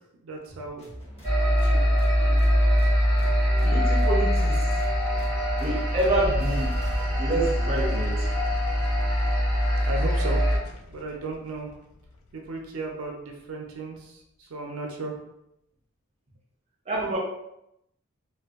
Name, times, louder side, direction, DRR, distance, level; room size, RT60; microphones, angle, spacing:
voice 1, 0.2-1.0 1.5-1.9 2.2-2.4 9.8-10.5 10.9-11.7 12.3-15.2, right 2 dB, 90° right, 2 dB, 0.4 m, -36 dB
sound 1, 0.8-7.5, equal, 30° left, 0.8 m, -43 dB
sound 2, 1.2-10.6, equal, 10° left, 1.1 m, -23 dB
sound 3, 3.2-13.5, equal, 80° left, 0.3 m, -41 dB
voice 2, 3.6-4.7 5.6-6.8 7.2-8.3 16.9-17.2, right 1 dB, 30° right, -3 dB, 0.6 m, -27 dB
2.5 x 2.2 x 2.3 m, 0.82 s
head